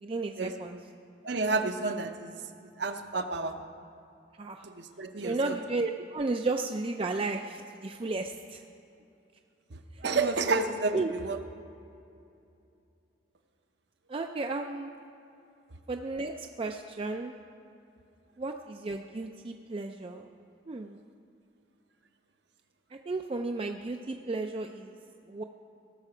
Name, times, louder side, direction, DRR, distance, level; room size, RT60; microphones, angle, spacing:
voice 1, 0.0-0.8 4.4-4.7 5.2-8.6 9.9-10.0 10.9-11.1 14.1-14.9 15.9-17.3 18.4-20.3 20.7-21.0 22.9-25.0 25.3-25.4, right 3 dB, 25° right, 4 dB, 0.3 m, -33 dB
voice 2, 1.2-2.3 2.8-3.5 4.6-5.6 9.7-11.4, right 3 dB, 60° right, 7 dB, 0.7 m, -30 dB
17.5 x 6.7 x 4.9 m, 2.6 s
head